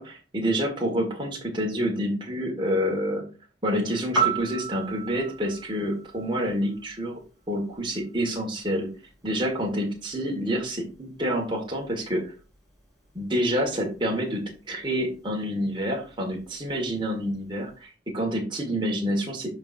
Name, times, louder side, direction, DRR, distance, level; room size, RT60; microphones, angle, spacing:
voice 1, 0.0-3.2 3.6-7.2 7.5-8.9 9.2-12.3 13.1-19.5, equal, 25° right, 0 dB, 1.7 m, -28 dB
Piano, 4.1-7.1 15.2-15.4, right 5 dB, ahead, 3.5 m, -31 dB
12.0 x 4.1 x 2.6 m, 0.34 s
head